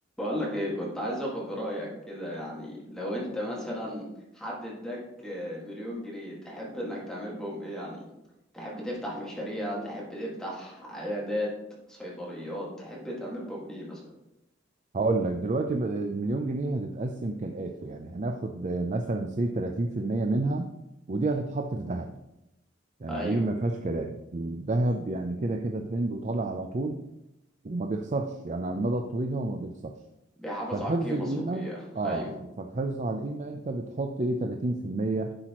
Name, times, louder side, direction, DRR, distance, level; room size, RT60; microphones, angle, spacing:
voice 1, 0.2-4.0 4.3-8.0 8.5-11.5 11.9-14.0 23.1-23.4 30.4-31.2 31.5-32.3, equal, 5° left, -5 dB, 1.9 m, -35 dB
voice 2, 14.9-20.7 21.1-22.1 23.0-27.0 27.6-29.9 30.7-35.3, right 2 dB, 40° right, 4 dB, 0.5 m, -30 dB
9.8 x 6.1 x 3.0 m, 0.92 s
head